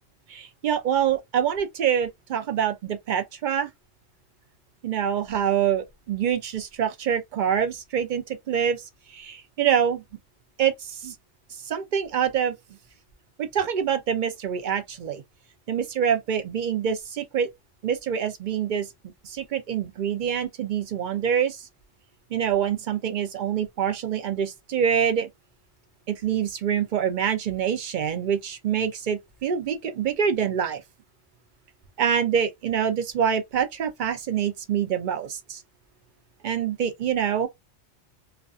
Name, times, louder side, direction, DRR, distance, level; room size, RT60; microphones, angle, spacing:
voice 1, 0.3-3.7 4.8-10.0 10.6-11.1 11.5-12.5 13.4-15.2 15.7-17.5 17.8-18.9 19.2-21.7 22.3-25.3 26.2-30.8 32.0-35.6 36.4-37.5, right 8 dB, 55° right, 0.5 m, -25 dB
2.4 x 2.2 x 2.4 m
omnidirectional pair, 1.3 m